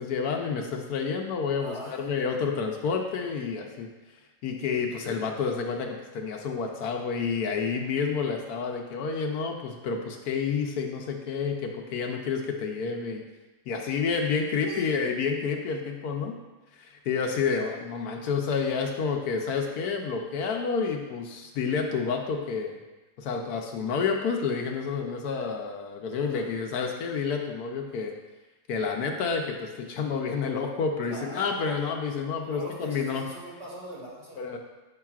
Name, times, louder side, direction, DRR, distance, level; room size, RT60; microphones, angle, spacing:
voice 1, 0.0-3.9 4.4-13.2 13.7-16.4 16.7-22.8 23.2-28.1 28.7-33.3 34.4-34.6, left 5 dB, 75° left, 3 dB, 1.2 m, -29 dB
voice 2, 1.6-2.0 14.6-14.9 26.2-26.5 31.0-31.5 32.4-34.4, right 1 dB, 45° right, -7 dB, 2.6 m, -41 dB
8.8 x 5.7 x 2.4 m, 1.1 s
omnidirectional pair, 1.7 m